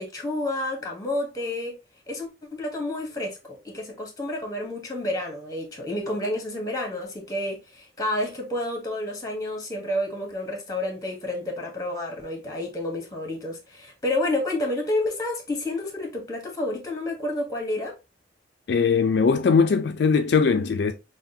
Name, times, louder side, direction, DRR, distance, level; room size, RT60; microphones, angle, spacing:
voice 1, 0.0-1.8 2.1-17.9, left 1 dB, 20° left, 1.0 m, -30 dB
voice 2, 18.7-20.9, left 5 dB, 60° left, 0.3 m, -20 dB
5.7 x 2.2 x 2.7 m
head